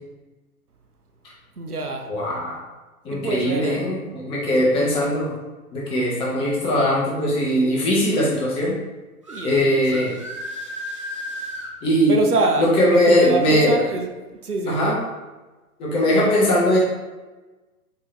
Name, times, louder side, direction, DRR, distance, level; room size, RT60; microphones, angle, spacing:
voice 1, 1.6-2.1 3.1-3.9 4.6-5.1 9.3-10.1 12.1-15.0, right 3 dB, 85° right, 4 dB, 0.7 m, -26 dB
voice 2, 2.1-2.6 3.0-5.4 5.7-8.7 9.4-10.1 11.8-12.2 12.6-13.8 14.6-14.9 15.8-16.8, equal, 10° left, -5 dB, 0.7 m, -20 dB
sound 1, 9.2-9.5 9.9-11.7, equal, 25° right, 0.3 m, -33 dB
4.5 x 3.6 x 3.2 m, 1.2 s
figure-of-eight pair, 115°, 44 cm